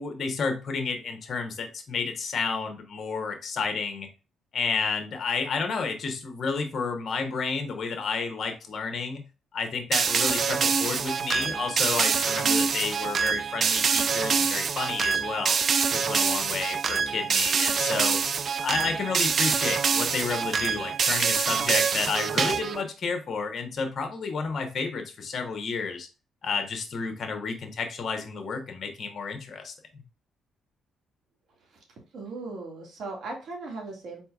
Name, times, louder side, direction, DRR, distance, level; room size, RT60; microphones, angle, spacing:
voice 1, 0.0-4.1 4.5-9.2 9.5-15.6 15.9-18.2 18.6-26.1 26.4-30.0, left 5 dB, 50° left, 5 dB, 1.1 m, -31 dB
sound 1, 9.9-22.8, right 6 dB, 50° right, 0.3 m, -25 dB
voice 2, 32.1-34.2, right 3 dB, 65° right, 0 dB, 2.0 m, -38 dB
4.3 x 4.0 x 2.4 m, 0.32 s
cardioid pair, 90°, 0 cm